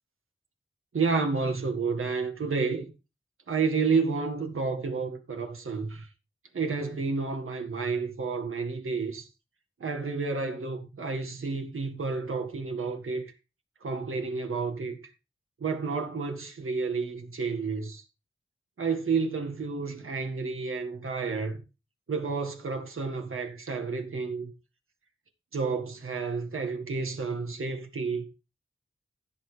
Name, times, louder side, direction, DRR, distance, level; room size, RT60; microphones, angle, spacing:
voice 1, 0.9-2.9 3.5-6.1 6.5-9.3 9.8-13.3 13.8-15.0 15.6-18.0 18.8-21.6 22.1-24.5 25.5-28.3, right 4 dB, 90° right, 1.8 m, -30 dB
15.5 x 6.2 x 3.4 m
wide cardioid pair, 65°, 21 cm